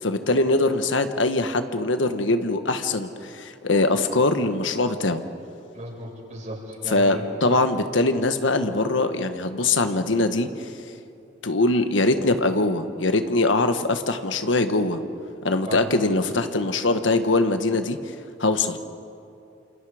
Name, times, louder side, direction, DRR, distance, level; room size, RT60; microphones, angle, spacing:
voice 1, 0.0-5.2 6.9-10.7 11.4-15.0 15.4-18.0 18.4-18.8, left 2 dB, 85° left, 9 dB, 1.4 m, -22 dB
voice 2, 5.7-7.6 15.7-15.8, right 1 dB, 40° right, -2 dB, 6.4 m, -35 dB
29.0 x 27.5 x 5.0 m, 2.7 s
head